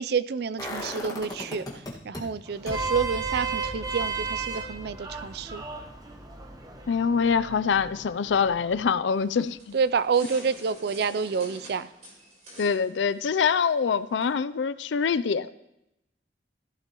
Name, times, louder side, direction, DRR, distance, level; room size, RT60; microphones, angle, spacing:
voice 1, 0.0-5.6 9.7-11.9, right 5 dB, 60° right, 16 dB, 0.4 m, -28 dB
sound 1, 0.6-2.2 2.7-8.5 8.8-8.9, left 1 dB, 20° left, 1.8 m, -40 dB
Vehicle horn car horn honking, 2.5-8.9, right 4 dB, 20° right, 1.1 m, -35 dB
voice 2, 6.9-9.7 12.6-15.5, left 6 dB, 80° left, 14 dB, 0.4 m, -25 dB
sound 2, 9.1-14.4, equal, 40° right, 4.2 m, -48 dB
14.5 x 12.0 x 3.0 m, 0.86 s
head